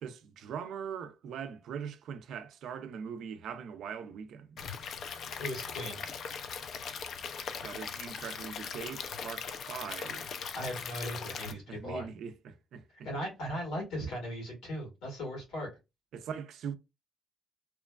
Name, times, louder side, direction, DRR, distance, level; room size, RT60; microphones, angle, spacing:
voice 1, 0.0-4.6 7.6-10.3 11.5-13.1 16.1-16.7, right 7 dB, 75° right, 0.4 m, -41 dB
Stream / Liquid, 4.6-11.5, left 6 dB, 65° left, 0.4 m, -40 dB
voice 2, 5.3-6.0 10.5-12.1 13.0-15.7, equal, 90° left, 1.5 m, -38 dB
2.9 x 2.2 x 2.2 m
cardioid pair, 90°, 0 cm